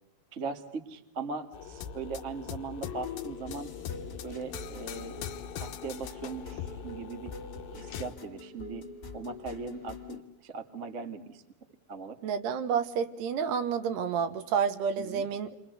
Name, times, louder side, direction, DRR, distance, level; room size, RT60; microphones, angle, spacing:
voice 1, 0.3-3.7 4.2-5.2 5.5-7.3 7.8-8.8 9.1-11.4 11.9-12.1 15.0-15.3, right 4 dB, 35° right, 6 dB, 1.0 m, -39 dB
sound 1, 1.5-8.2, left 9 dB, 65° left, 2.5 m, -41 dB
sound 2, 2.8-10.2, left 4 dB, 30° left, 2.3 m, -45 dB
voice 2, 12.2-15.6, right 7 dB, 70° right, 10 dB, 3.1 m, -29 dB
30.0 x 24.0 x 8.2 m, 0.84 s
omnidirectional pair, 5.3 m